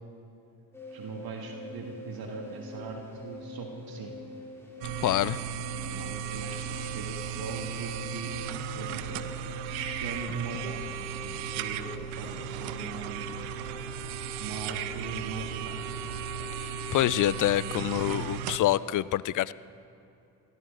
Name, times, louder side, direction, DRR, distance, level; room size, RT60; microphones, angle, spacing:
sound 1, 0.7-19.0, left 2 dB, 5° left, 3.3 m, -45 dB
voice 1, 0.9-4.1 4.8-5.3 5.7-8.3 8.8-9.3 9.7-10.9 11.2-13.3 14.4-15.8 17.0-17.3, right 4 dB, 55° right, 3 dB, 1.7 m, -40 dB
sound 2, 4.8-18.6, right 9 dB, 85° right, 0.7 m, -36 dB
voice 2, 5.0-5.5 16.6-19.5, left 14 dB, 45° left, 19 dB, 0.5 m, -26 dB
sound 3, 6.6-18.5, left 1 dB, 25° left, 2.6 m, -54 dB
18.5 x 14.0 x 3.8 m, 2.8 s
supercardioid pair, 65°, 43 cm